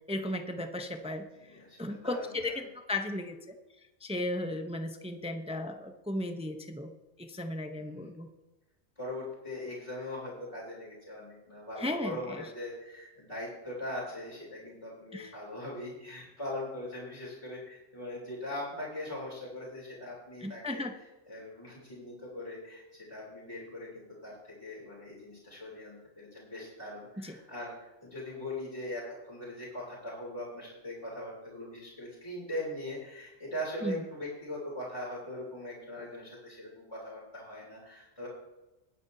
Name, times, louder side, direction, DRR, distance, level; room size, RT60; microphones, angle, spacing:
voice 1, 0.1-1.2 1.8-3.4 4.0-6.9 7.2-8.3 11.8-12.4 15.1-15.3 20.4-21.0 27.2-27.3 33.8-34.0, left 1 dB, 5° right, 6 dB, 0.5 m, -35 dB
voice 2, 1.1-2.7 4.5-4.6 7.7-8.2 8.9-20.8 21.3-38.3, left 1 dB, 20° left, -7 dB, 3.5 m, -41 dB
20.0 x 9.0 x 2.7 m, 1.1 s
omnidirectional pair, 1.4 m